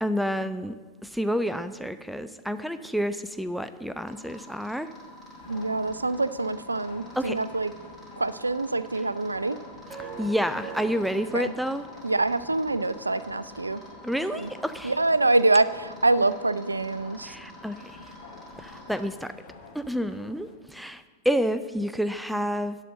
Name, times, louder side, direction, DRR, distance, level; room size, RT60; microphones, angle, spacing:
voice 1, 0.0-0.8 1.0-4.9 7.2-7.4 10.2-11.9 14.0-14.9 17.2-17.9 18.6-19.3 19.7-22.8, equal, ahead, 12 dB, 0.3 m, -29 dB
sound 1, 4.0-19.0, right 1 dB, 15° right, 3.1 m, -45 dB
sound 2, 5.3-20.6, left 3 dB, 55° left, 1.8 m, -50 dB
voice 2, 5.5-7.7 8.2-9.6 11.3-11.6 12.0-13.8 14.3-14.5 14.8-17.4, right 2 dB, 80° right, 16 dB, 0.3 m, -25 dB
11.0 x 4.1 x 7.5 m, 1.4 s
figure-of-eight pair, 90°, 0 cm